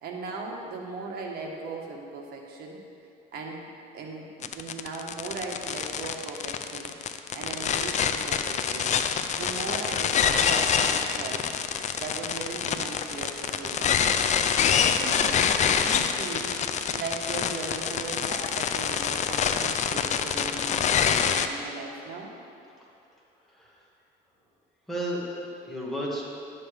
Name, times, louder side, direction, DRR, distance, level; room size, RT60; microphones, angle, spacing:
voice 1, 0.0-2.8 3.3-3.6 3.9-8.9 9.4-11.5 12.0-14.0 14.5-16.6 16.9-22.3, right 3 dB, 70° right, 0 dB, 1.4 m, -38 dB
sound 1, 4.4-21.5, left 7 dB, 45° left, 0.4 m, -26 dB
voice 2, 24.9-26.2, equal, ahead, -6 dB, 2.0 m, -33 dB
11.0 x 7.3 x 3.4 m, 2.7 s
cardioid pair, 110°, 17 cm